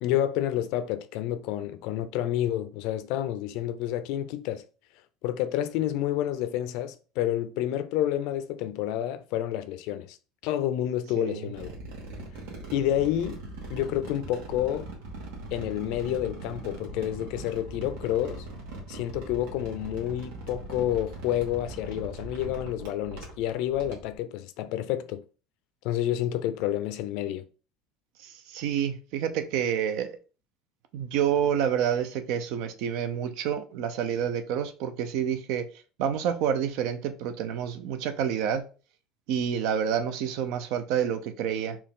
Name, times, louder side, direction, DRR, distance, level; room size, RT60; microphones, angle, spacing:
voice 1, 0.0-4.6 5.2-10.2 10.4-11.7 12.7-13.4 13.7-14.9 15.5-18.5 18.9-25.2 25.8-27.5, left 12 dB, 65° left, 0.5 m, -29 dB
voice 2, 11.2-11.5 28.2-30.2 30.9-35.7 36.0-38.7 39.3-41.8, right 8 dB, 65° right, 0.6 m, -28 dB
sound 1, 11.5-24.1, right 2 dB, 80° right, 1.8 m, -40 dB
4.4 x 2.9 x 3.7 m
cardioid pair, 155°, 0 cm